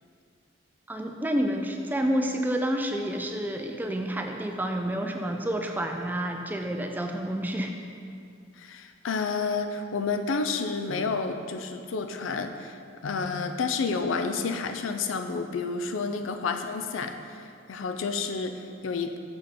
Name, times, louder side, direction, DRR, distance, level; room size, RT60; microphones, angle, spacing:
voice 1, 0.9-7.7, equal, 10° right, 3 dB, 0.3 m, -29 dB
voice 2, 8.6-17.4 17.7-19.2, left 4 dB, 85° left, 7 dB, 0.5 m, -30 dB
6.2 x 5.2 x 4.2 m, 2.4 s
head